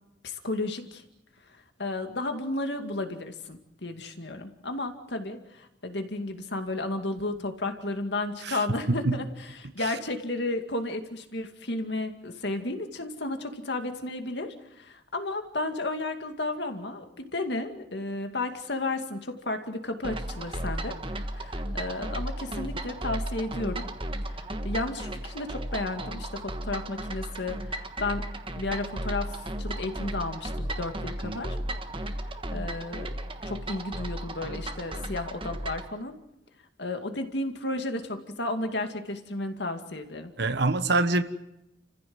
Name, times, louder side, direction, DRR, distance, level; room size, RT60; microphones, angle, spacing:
voice 1, 0.2-1.0 1.8-21.0 21.4-23.9 24.3-28.2 28.5-31.6 32.1-32.2 32.5-33.1 33.5-36.2 36.8-40.3, left 2 dB, 60° left, 2.3 m, -33 dB
sound 1, 20.0-35.9, right 1 dB, 25° right, 1.4 m, -35 dB
voice 2, 40.4-41.2, right 2 dB, 60° right, 1.3 m, -25 dB
29.5 x 15.0 x 7.9 m
head